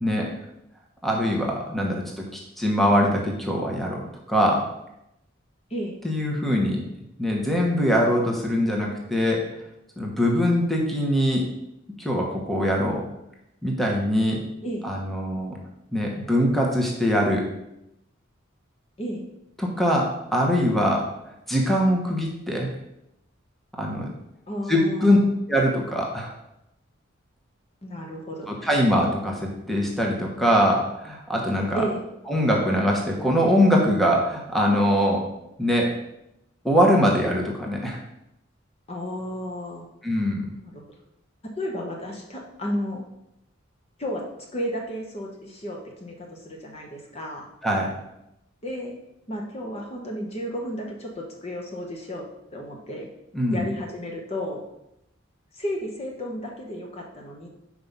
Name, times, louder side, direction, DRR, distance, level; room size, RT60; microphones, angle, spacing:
voice 1, 0.0-0.3 1.0-4.7 6.0-6.8 7.2-9.4 10.0-11.5 12.0-13.0 13.6-14.4 14.8-15.6 15.9-17.4 19.6-21.1 21.5-22.7 23.8-24.1 24.7-25.2 25.5-26.3 28.5-31.9 32.3-35.3 35.6-35.9 36.6-38.0 40.0-40.5 47.6-47.9 53.3-53.6, equal, ahead, -1 dB, 1.0 m, -22 dB
voice 2, 24.5-25.3 27.8-28.7 31.7-32.0 38.9-39.9 40.6-40.8 41.6-43.0 44.0-44.2 44.5-47.5 48.6-48.9 49.3-52.2 52.5-53.1 53.5-54.6 55.5-57.5, equal, 30° left, 0 dB, 1.0 m, -33 dB
5.4 x 4.7 x 5.4 m, 0.84 s
head